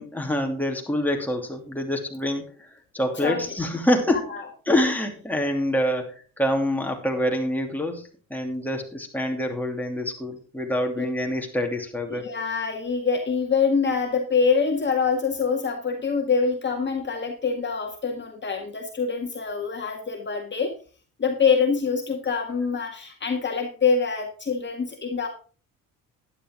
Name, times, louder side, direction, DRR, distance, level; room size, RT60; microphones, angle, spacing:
voice 1, 0.0-2.7 2.9-4.3 4.7-12.2, left 1 dB, 5° left, 2 dB, 2.8 m, -26 dB
voice 2, 12.1-20.7 21.2-25.3, left 5 dB, 30° left, 2 dB, 1.8 m, -25 dB
11.5 x 10.0 x 3.7 m, 0.39 s
supercardioid pair, 90°, 35 cm